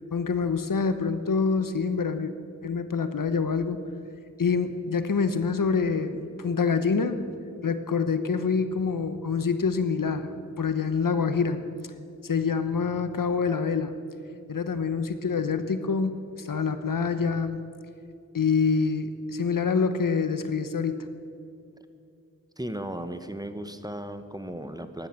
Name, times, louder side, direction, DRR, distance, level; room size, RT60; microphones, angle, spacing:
voice 1, 0.1-2.3 2.6-3.8 4.4-7.2 7.6-11.6 12.2-13.9 14.5-17.6 18.3-21.1, left 5 dB, 80° left, 10 dB, 1.0 m, -26 dB
voice 2, 22.6-25.1, right 1 dB, 10° right, 9 dB, 1.0 m, -36 dB
14.5 x 11.5 x 7.7 m, 2.5 s
wide cardioid pair, 55°, 32 cm